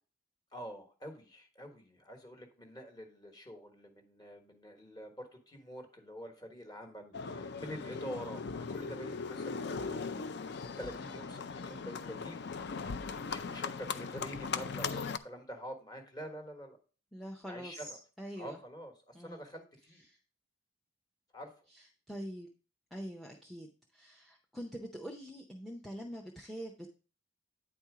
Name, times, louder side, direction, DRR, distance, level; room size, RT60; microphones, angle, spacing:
voice 1, 0.5-10.4 10.8-12.4 13.2-16.8 17.4-18.0 18.4-20.0 21.3-21.5, equal, 20° left, 4 dB, 1.3 m, -46 dB
Livestock farm animals working animals, 7.1-15.2, left 5 dB, 50° left, 0.5 m, -39 dB
voice 2, 17.1-17.9 18.2-18.6 19.1-19.4 20.1-20.2 22.1-22.5 22.9-26.9, equal, ahead, 1 dB, 0.6 m, -44 dB
9.1 x 4.3 x 4.8 m, 0.38 s
head